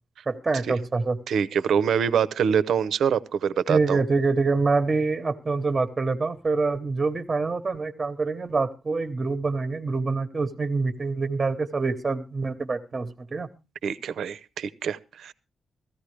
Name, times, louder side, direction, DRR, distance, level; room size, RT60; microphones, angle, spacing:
voice 1, 0.3-1.2 3.7-13.5, right 3 dB, 25° right, 9 dB, 1.0 m, -25 dB
voice 2, 1.3-4.0 13.8-15.3, right 7 dB, 80° right, 17 dB, 0.7 m, -25 dB
16.0 x 14.5 x 3.3 m, 0.29 s
cardioid pair, 120°, 0 cm